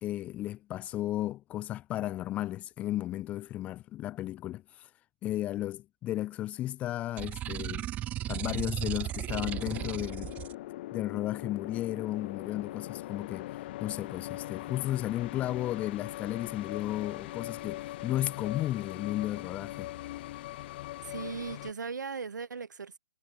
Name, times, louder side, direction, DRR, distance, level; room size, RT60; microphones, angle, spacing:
voice 1, 0.0-4.9 5.2-7.9 8.3-10.3 10.9-19.9, left 14 dB, 15° left, 0.5 m, -34 dB
sound 1, 7.2-10.5, right 13 dB, 15° right, 1.0 m, -36 dB
sound 2, 9.3-21.7, left 16 dB, 30° left, 1.5 m, -41 dB
voice 2, 21.0-23.0, right 5 dB, 60° right, 1.7 m, -38 dB
figure-of-eight pair, 135°, 11 cm